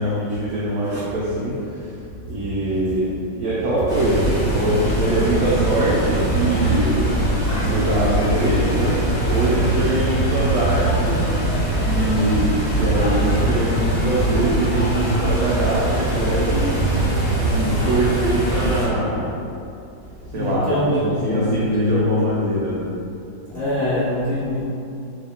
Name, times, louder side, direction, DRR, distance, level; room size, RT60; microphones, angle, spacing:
voice 1, 0.0-1.8 2.3-16.8 17.3-19.3 20.3-22.9, right 1 dB, 85° right, -7 dB, 0.8 m, -23 dB
sound 1, 3.9-18.9, right 1 dB, 25° left, 1.1 m, -21 dB
voice 2, 20.0-22.2 23.5-24.6, equal, 50° left, -11 dB, 0.9 m, -24 dB
3.1 x 2.7 x 3.5 m, 2.6 s
omnidirectional pair, 2.2 m